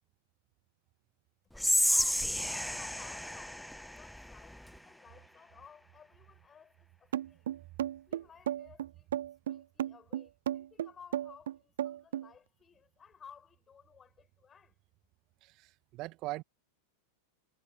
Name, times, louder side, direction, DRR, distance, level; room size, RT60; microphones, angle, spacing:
Whispering, 1.6-4.8, equal, ahead, 0.5 m, -31 dB
voice 1, 1.9-7.5 8.1-9.1 9.5-14.8, left 7 dB, 20° left, 7.1 m, -57 dB
sound 1, 7.1-12.3, right 11 dB, 60° right, 0.3 m, -34 dB
voice 2, 15.4-16.4, right 20 dB, 40° right, 2.3 m, -41 dB
figure-of-eight pair, 90°, 0 cm